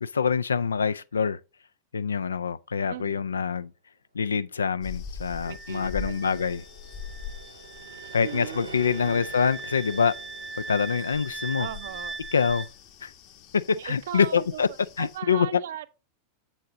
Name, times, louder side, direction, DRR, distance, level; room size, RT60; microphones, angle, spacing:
voice 1, 0.0-1.4 1.9-3.7 4.1-6.6 8.1-10.2 10.7-11.7 12.3-12.7 13.0-13.1 13.5-14.7 15.0-15.6, left 6 dB, 70° left, 0.4 m, -25 dB
voice 2, 2.9-3.2 5.4-6.4 8.2-9.3 11.6-12.1 13.7-14.6 15.0-15.9, right 11 dB, 60° right, 0.6 m, -38 dB
sound 1, 4.8-15.2, left 5 dB, 45° left, 1.2 m, -43 dB
sound 2, 4.9-11.9, right 2 dB, 85° right, 1.7 m, -47 dB
Wind instrument woodwind instrument, 5.4-12.7, right 4 dB, 10° right, 0.6 m, -40 dB
7.5 x 6.3 x 3.8 m
figure-of-eight pair, 90°, 0 cm